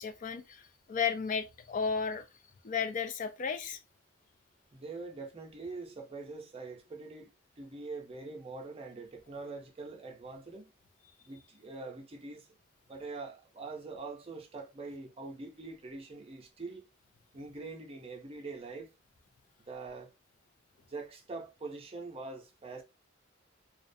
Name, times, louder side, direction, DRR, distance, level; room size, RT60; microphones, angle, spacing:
voice 1, 0.0-2.2 2.6-3.8, left 6 dB, 40° left, 0.3 m, -33 dB
voice 2, 4.7-10.6 11.3-12.5 12.9-16.9 17.3-18.9 19.7-20.1 20.9-22.8, right 3 dB, 30° right, 0.5 m, -44 dB
2.3 x 2.1 x 2.5 m
head